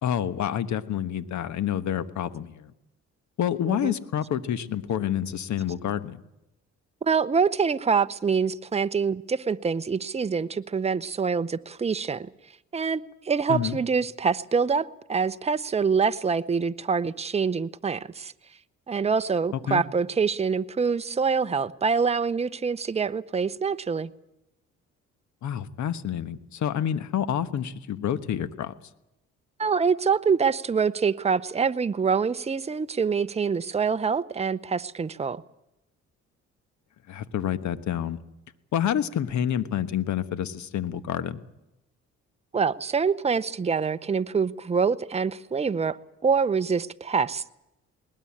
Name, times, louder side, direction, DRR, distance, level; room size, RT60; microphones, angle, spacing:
voice 1, 0.0-2.7 3.4-6.2 13.5-13.8 19.5-19.8 25.4-28.7 37.1-38.2 38.7-41.4, left 9 dB, 70° left, 1.3 m, -28 dB
voice 2, 7.0-12.3 12.7-18.3 18.9-24.1 29.6-35.4 42.5-46.0 46.2-47.5, right 5 dB, 20° right, 0.7 m, -25 dB
20.0 x 19.0 x 8.6 m
cardioid pair, 90°, 30 cm